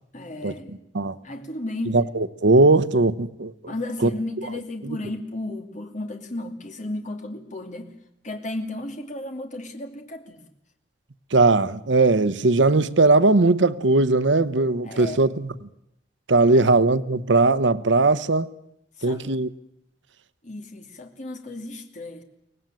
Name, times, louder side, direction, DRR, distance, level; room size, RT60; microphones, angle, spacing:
voice 1, 0.1-0.8 1.2-2.0 3.7-7.9 8.2-10.5 14.8-15.3 16.5-16.7 19.0-19.4 20.4-22.2, left 1 dB, 45° left, 2.6 m, -34 dB
voice 2, 1.9-3.5 4.0-4.1 11.3-15.3 16.3-18.5 19.0-19.5, right 3 dB, 90° right, 0.9 m, -19 dB
24.0 x 18.5 x 9.2 m
head